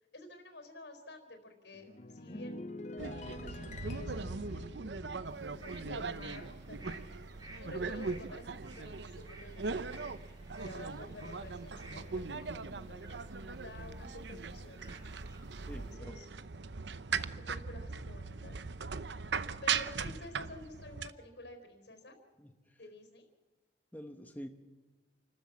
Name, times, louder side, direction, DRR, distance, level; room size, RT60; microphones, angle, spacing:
voice 1, 0.1-2.7 3.0-7.3 7.6-10.1 10.6-13.2 13.6-15.1 15.6-16.3 17.3-18.6 19.3-22.2 22.8-23.3, left 1 dB, 85° left, 7 dB, 4.4 m, -51 dB
sound 1, 1.7-6.4 6.6-7.0, left 2 dB, 40° left, 0.7 m, -47 dB
sound 2, 3.0-21.1, right 5 dB, 80° right, 0.8 m, -39 dB
sound 3, 5.2-15.9, right 2 dB, 25° right, 3.6 m, -57 dB
voice 2, 15.7-16.2 22.4-22.8 23.9-24.5, equal, 10° left, 5 dB, 1.2 m, -47 dB
29.0 x 13.5 x 7.4 m, 1.3 s
head